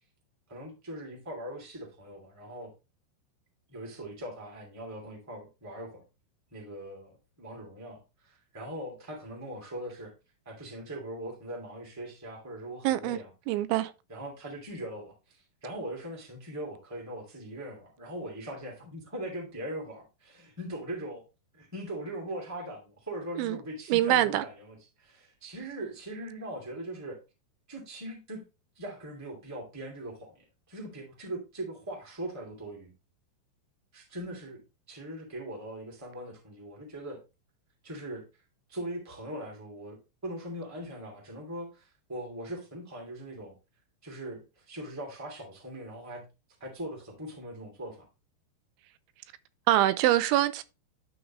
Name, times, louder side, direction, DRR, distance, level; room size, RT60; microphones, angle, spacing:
voice 1, 0.5-2.7 3.7-6.0 6.5-10.1 10.4-13.3 14.1-21.2 21.5-27.2 27.7-28.4 28.7-32.9 33.9-37.2 37.8-38.2 38.7-43.5 44.0-46.2 46.6-48.1, right 1 dB, 10° right, 1.1 m, -40 dB
voice 2, 12.8-13.2 13.5-13.9 23.4-23.6 23.9-24.5 49.7-50.6, right 14 dB, 85° right, 3.0 m, -24 dB
12.0 x 4.0 x 3.1 m
omnidirectional pair, 5.3 m